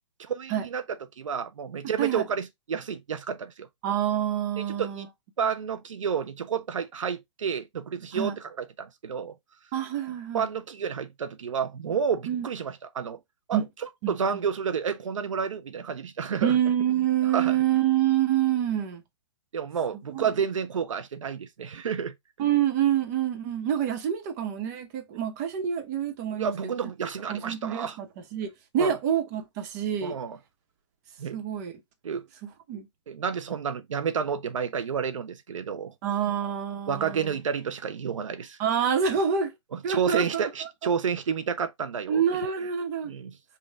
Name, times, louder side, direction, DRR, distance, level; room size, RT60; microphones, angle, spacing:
voice 1, 0.2-0.8 1.2-3.7 4.8-5.1 5.4-9.3 10.3-13.2 13.5-13.6 14.1-16.6 17.3-17.6 19.5-22.1 26.3-28.0 28.8-28.9 30.0-30.4 31.2-31.4 32.0-32.2 33.1-35.9 36.9-38.6 39.7-42.2 42.6-42.7 43.0-43.4, right 7 dB, 90° right, 0.6 m, -30 dB
voice 2, 3.8-5.1 8.1-8.3 9.7-10.5 12.3-12.5 13.5-13.7 14.0-14.4 16.4-19.0 20.1-20.3 22.4-26.7 27.3-30.2 31.3-31.7 32.4-32.9 36.0-37.4 38.6-39.5 39.8-40.5 42.1-43.1, right 9 dB, 35° right, 1.1 m, -27 dB
5.5 x 2.4 x 3.4 m
hypercardioid pair, 150°, 16 cm